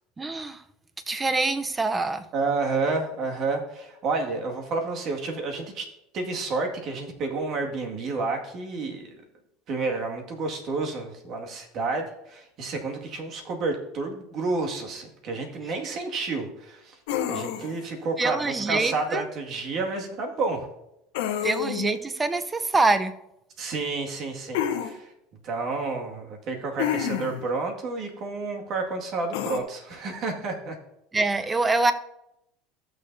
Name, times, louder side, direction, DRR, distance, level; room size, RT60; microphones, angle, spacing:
voice 1, 0.2-0.6 1.1-2.3 18.2-19.3 21.4-23.1 31.1-31.9, right 3 dB, 15° right, 11 dB, 0.7 m, -25 dB
voice 2, 2.3-5.9 6.1-9.1 9.7-17.0 17.3-20.7 21.3-21.5 23.6-25.1 25.4-30.8, right 3 dB, 50° right, 2 dB, 2.0 m, -30 dB
sound 1, 17.1-17.9 21.1-21.9 24.5-24.9 26.8-27.5 29.3-29.6, left 9 dB, 80° left, 1.0 m, -28 dB
15.5 x 6.6 x 2.7 m, 0.83 s
supercardioid pair, 105°, 0 cm